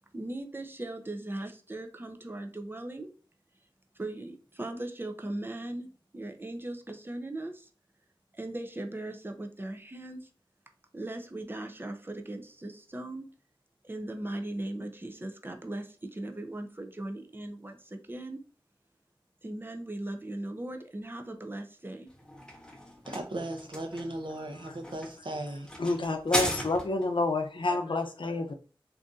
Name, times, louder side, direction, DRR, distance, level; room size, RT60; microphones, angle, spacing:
voice 1, 0.1-3.1 4.0-5.9 6.1-7.7 8.3-10.3 10.9-13.3 13.8-18.4 19.4-22.1, right 1 dB, 25° right, 5 dB, 0.5 m, -38 dB
sound 1, 22.1-27.2, left 1 dB, 10° left, 0.8 m, -36 dB
voice 2, 23.1-25.7, right 1 dB, 60° right, 4 dB, 0.7 m, -37 dB
voice 3, 25.8-28.5, left 2 dB, 65° left, 5 dB, 0.5 m, -29 dB
2.6 x 2.6 x 3.6 m, 0.39 s
wide cardioid pair, 60°, 9 cm